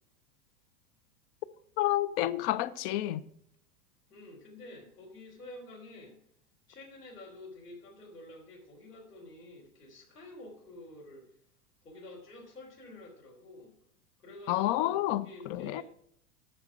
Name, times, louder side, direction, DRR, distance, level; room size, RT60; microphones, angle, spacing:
voice 1, 1.8-3.2 14.5-15.2 15.5-15.8, left 14 dB, 40° left, 0.6 m, -29 dB
voice 2, 4.1-6.2 6.7-11.3 11.8-13.7 14.2-15.8, left 1 dB, 85° left, 3.7 m, -49 dB
9.4 x 6.5 x 6.1 m
figure-of-eight pair, 90°, 46 cm